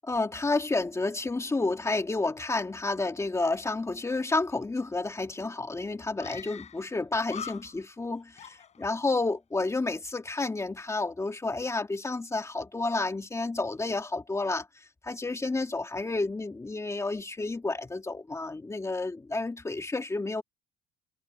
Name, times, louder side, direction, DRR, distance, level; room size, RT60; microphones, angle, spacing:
voice 1, 0.0-14.7 15.0-20.4, left 3 dB, 15° left, 2.2 m, -30 dB
Screaming, 5.4-5.5 6.2-7.0 7.2-8.0 8.4-9.3, left 7 dB, 40° left, 4.3 m, -43 dB
cardioid pair, 110°, 17 cm